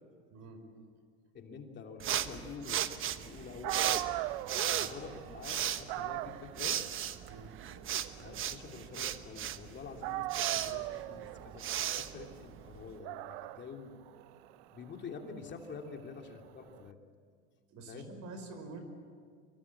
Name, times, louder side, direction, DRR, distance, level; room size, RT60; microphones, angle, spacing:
voice 1, 0.3-0.7 4.6-4.9 7.3-7.6 17.7-18.8, right 3 dB, 55° right, 7 dB, 5.4 m, -47 dB
voice 2, 1.3-2.8 3.2-4.2 4.8-6.8 8.2-14.0 14.7-17.0 17.9-18.1, left 5 dB, 35° left, 3 dB, 2.9 m, -47 dB
sound 1, 2.0-13.0, right 10 dB, 40° right, 1.2 m, -36 dB
Dog, 3.3-3.4 3.6-9.7 10.0-16.8, right 17 dB, 70° right, 0.8 m, -41 dB
25.0 x 23.0 x 8.6 m, 2.1 s
supercardioid pair, 105°, 32 cm